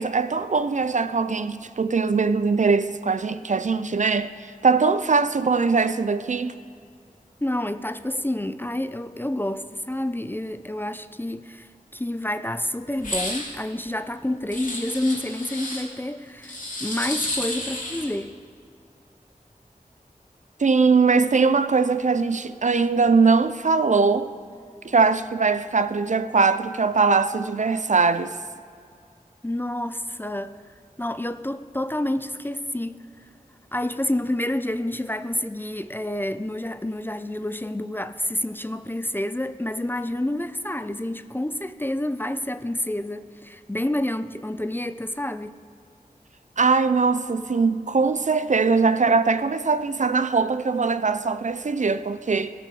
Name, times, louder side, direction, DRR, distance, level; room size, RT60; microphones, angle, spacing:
voice 1, 0.0-6.5 20.6-24.3 24.8-28.3 46.6-52.5, right 4 dB, 55° right, 0.4 m, -21 dB
voice 2, 7.4-18.4 29.4-30.6 31.0-33.0 33.7-45.5, left 1 dB, 15° left, 0.4 m, -29 dB
sound 1, 13.0-13.5 14.5-15.8 16.4-18.2, left 1 dB, 65° left, 2.1 m, -31 dB
17.0 x 6.0 x 4.7 m
wide cardioid pair, 55°, 15 cm